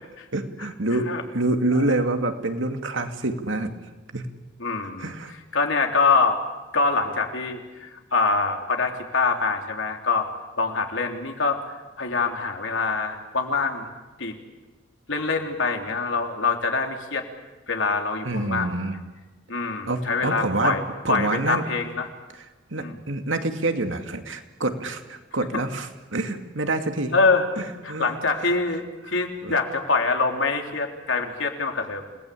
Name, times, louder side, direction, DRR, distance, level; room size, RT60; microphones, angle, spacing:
voice 1, 0.3-3.7 4.1-4.3 5.0-5.3 18.3-18.9 19.9-20.8 21.0-21.6 22.7-27.1 27.6-28.2 28.4-28.5 29.4-29.6, right 2 dB, 75° right, 6 dB, 2.5 m, -27 dB
voice 2, 4.6-5.1 5.5-6.4 6.7-10.3 10.6-13.9 14.2-14.3 15.1-17.2 17.7-18.8 19.5-22.1 22.8-23.0 27.1-27.5 27.8-32.0, left 4 dB, 75° left, 3 dB, 3.5 m, -24 dB
29.5 x 19.5 x 8.6 m, 1.2 s
head